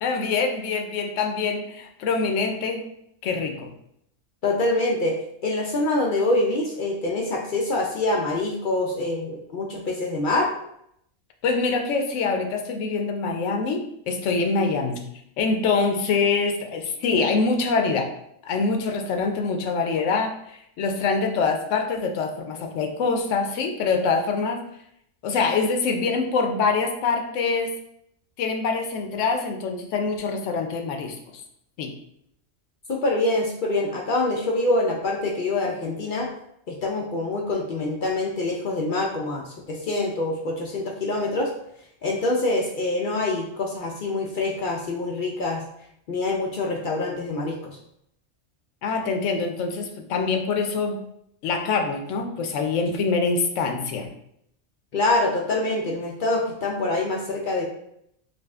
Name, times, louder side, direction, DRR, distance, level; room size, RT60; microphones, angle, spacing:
voice 1, 0.0-2.9 3.2-3.7 11.4-15.0 15.4-18.1 18.4-24.6 25.2-27.7 28.4-31.2 31.8-31.9 48.8-51.0 51.4-54.1, left 4 dB, 80° left, 4 dB, 0.9 m, -25 dB
voice 2, 4.4-5.2 5.4-10.5 32.9-36.3 36.7-41.5 42.0-45.6 46.1-47.8 54.9-57.7, left 2 dB, 60° left, 0 dB, 0.5 m, -25 dB
5.0 x 2.4 x 2.4 m, 0.74 s
omnidirectional pair, 1.3 m